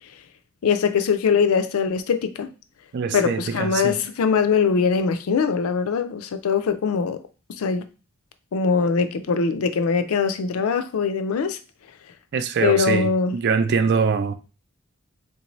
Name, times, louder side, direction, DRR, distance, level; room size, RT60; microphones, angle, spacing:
voice 1, 0.6-2.5 3.1-7.2 7.6-7.9 8.5-11.6 12.6-13.4, left 5 dB, 75° left, 0.4 m, -22 dB
voice 2, 2.9-4.0 12.3-14.3, right 5 dB, 50° right, 0.4 m, -23 dB
3.7 x 2.6 x 3.0 m
head